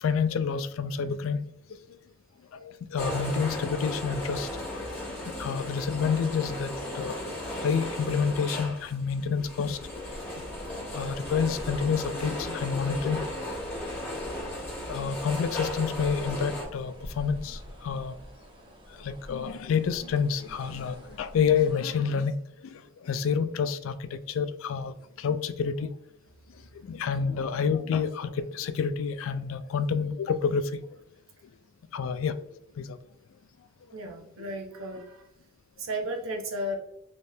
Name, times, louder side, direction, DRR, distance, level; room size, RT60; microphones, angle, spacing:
voice 1, 0.0-1.4 2.6-5.0 5.4-7.2 7.6-9.8 10.9-13.2 14.9-18.1 19.0-22.3 23.0-24.9 25.2-25.9 26.9-30.6 31.9-32.3 32.8-33.0, left 6 dB, 75° left, 12 dB, 0.3 m, -28 dB
sound 1, 3.0-16.6, left 1 dB, 10° left, 1.1 m, -36 dB
sound 2, 9.7-22.0, equal, 25° right, 0.6 m, -47 dB
voice 2, 33.9-35.3 35.8-36.8, equal, 80° right, 2 dB, 0.8 m, -34 dB
3.3 x 3.2 x 2.7 m, 0.76 s
head